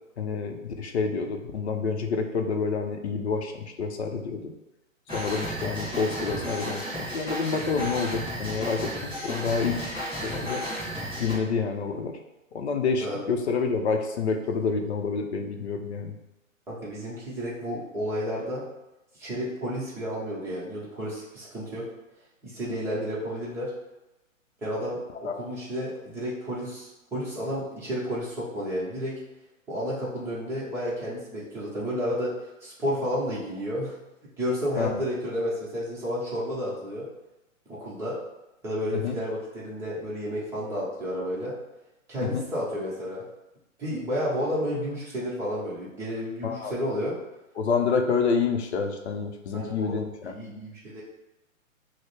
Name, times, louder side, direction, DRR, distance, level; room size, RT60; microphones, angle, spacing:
voice 1, 0.2-4.5 5.1-9.9 10.2-10.6 11.1-12.2 12.5-16.1 25.2-25.3 34.8-35.0 38.9-39.2 42.2-42.4 46.4-46.7 47.6-50.3, left 5 dB, 55° left, 4 dB, 0.7 m, -28 dB
sound 1, 5.1-11.3, equal, 10° left, 1.4 m, -33 dB
voice 2, 16.7-18.6 19.2-21.9 22.4-23.7 24.6-29.2 29.7-32.3 32.6-33.9 34.4-37.1 37.7-38.2 38.6-41.6 42.1-43.2 43.8-47.2 49.5-51.0, equal, 5° right, -8 dB, 0.7 m, -31 dB
6.1 x 2.1 x 3.2 m, 0.96 s
figure-of-eight pair, 135°, 41 cm